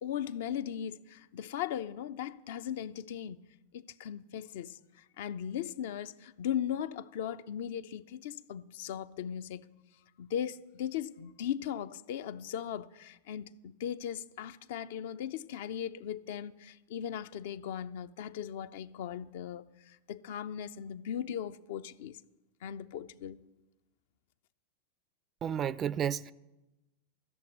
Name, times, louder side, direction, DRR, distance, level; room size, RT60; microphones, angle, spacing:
voice 1, 0.0-3.4 3.7-9.7 10.2-22.2 22.6-23.4, left 9 dB, 55° left, 0.4 m, -38 dB
voice 2, 25.4-26.3, right 9 dB, 25° right, 0.3 m, -31 dB
13.5 x 7.0 x 9.5 m
figure-of-eight pair, 90°, 0 cm